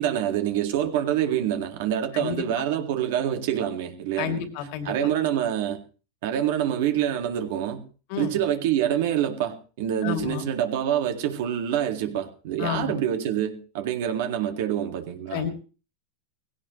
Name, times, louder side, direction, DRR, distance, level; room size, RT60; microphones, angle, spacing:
voice 1, 0.0-4.4 4.8-5.8 6.2-7.8 8.2-15.4, right 10 dB, 70° right, 2.1 m, -26 dB
voice 2, 4.2-5.1 8.1-8.3 10.0-10.4 12.6-13.0 15.3-15.5, left 8 dB, 60° left, 2.7 m, -30 dB
18.5 x 16.5 x 3.2 m
supercardioid pair, 120°, 0 cm